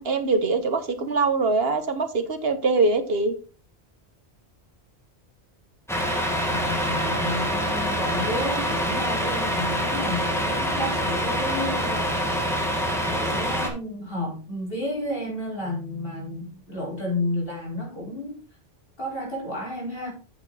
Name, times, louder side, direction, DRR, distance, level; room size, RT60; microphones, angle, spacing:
voice 1, 0.0-3.3, right 3 dB, 60° right, 9 dB, 1.4 m, -23 dB
Truck, 5.9-13.7, equal, ahead, 2.0 m, -25 dB
voice 2, 6.4-12.2 12.8-18.3 19.0-20.1, left 1 dB, 55° left, -2 dB, 4.7 m, -31 dB
8.7 x 7.4 x 4.1 m, 0.35 s
omnidirectional pair, 1.1 m